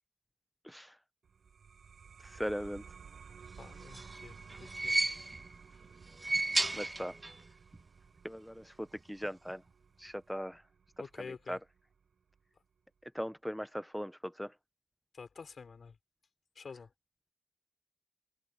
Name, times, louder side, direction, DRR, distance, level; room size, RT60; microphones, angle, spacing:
voice 1, 0.6-0.9 2.2-2.8 6.7-7.1 8.2-9.6 10.0-10.6 11.5-11.6 13.1-14.5, equal, ahead, 0.8 m, -39 dB
sound 1, 1.2-12.4, right 6 dB, 85° right, 5.5 m, -55 dB
voice 2, 3.6-4.9 11.0-11.6 15.1-16.0 16.5-16.9, left 5 dB, 70° left, 4.8 m, -49 dB
sound 2, 3.7-5.6 6.1-7.5 7.7-7.8 8.9-9.0, right 2 dB, 30° right, 0.4 m, -34 dB
cardioid pair, 65°, 0 cm